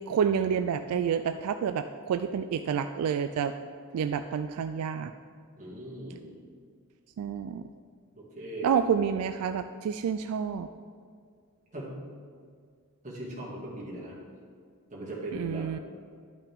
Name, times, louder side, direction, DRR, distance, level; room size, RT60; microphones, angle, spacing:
voice 1, 0.1-3.5 3.9-5.1 7.2-7.6 8.6-10.7 15.3-15.8, right 7 dB, 75° right, 8 dB, 0.3 m, -29 dB
voice 2, 5.6-6.4 8.2-8.7 11.7-12.0 13.0-14.2 14.9-15.7, right 1 dB, 35° right, -5 dB, 2.1 m, -39 dB
12.0 x 5.7 x 3.5 m, 2.1 s
head